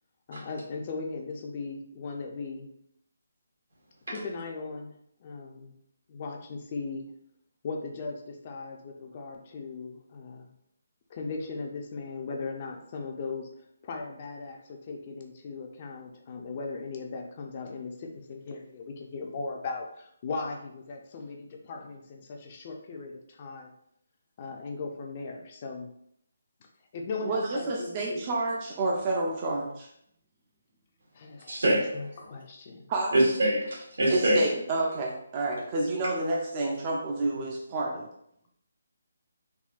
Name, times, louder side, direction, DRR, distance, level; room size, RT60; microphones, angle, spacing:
voice 1, 0.3-2.7 4.1-4.9 5.2-5.7 6.1-7.0 7.6-10.5 11.1-13.5 13.8-23.7 24.4-25.9 26.9-28.3 31.1-32.9, left 4 dB, 35° left, 2 dB, 0.4 m, -38 dB
voice 2, 27.2-29.9 32.9-33.1 34.1-38.1, right 2 dB, 30° right, -2 dB, 0.4 m, -29 dB
voice 3, 31.5-31.9 33.1-34.5, right 1 dB, 80° right, -4 dB, 1.5 m, -24 dB
3.6 x 2.2 x 2.4 m, 0.71 s
hypercardioid pair, 160°, 0 cm